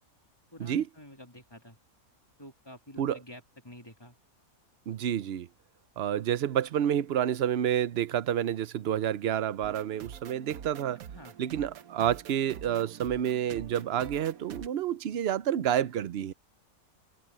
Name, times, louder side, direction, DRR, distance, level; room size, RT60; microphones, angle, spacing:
voice 1, 0.5-1.8 2.4-4.2 11.1-11.3, left 1 dB, 15° left, 2.7 m, -49 dB
voice 2, 4.9-5.5 6.0-11.0 11.4-16.3, right 10 dB, 55° right, 0.8 m, -29 dB
sound 1, 9.6-14.7, right 9 dB, 75° right, 1.3 m, -46 dB
open air
omnidirectional pair, 1.5 m